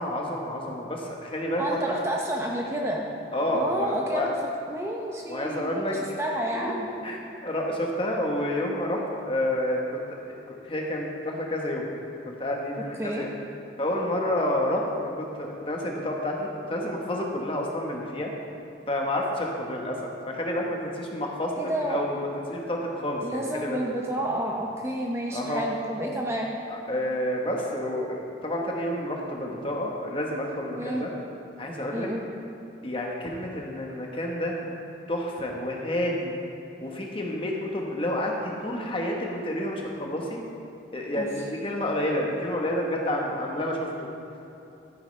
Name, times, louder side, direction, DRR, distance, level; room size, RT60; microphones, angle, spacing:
voice 1, 0.0-2.0 3.3-4.3 5.3-6.0 7.0-10.2 10.5-11.9 12.3-13.3 13.8-18.3 18.9-20.0 20.3-21.5 21.9-23.8 25.3-25.6 26.7-31.1 31.6-32.1 32.8-34.6 35.1-36.3 36.8-40.4 40.9-43.9, left 1 dB, 30° left, 0 dB, 1.2 m, -29 dB
voice 2, 1.6-3.1 3.5-4.3 4.7-6.9 13.0-13.2 21.5-22.0 23.2-26.6 30.8-31.1 31.9-32.2 41.1-41.3, right 1 dB, 15° right, -1 dB, 0.6 m, -30 dB
12.5 x 9.4 x 3.3 m, 2.9 s
head